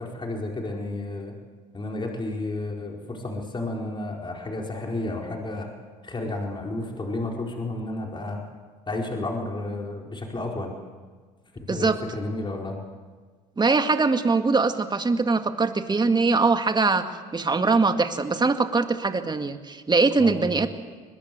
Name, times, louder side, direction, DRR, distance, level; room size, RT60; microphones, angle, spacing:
voice 1, 0.0-1.4 1.7-5.7 6.0-8.4 8.9-10.7 11.6-12.8 20.2-20.6, left 2 dB, 25° left, 0 dB, 4.9 m, -32 dB
voice 2, 11.7-12.0 13.6-17.0 17.3-20.7, right 3 dB, 20° right, 7 dB, 2.1 m, -22 dB
23.0 x 20.5 x 7.9 m, 1.5 s
hypercardioid pair, 70°, 20 cm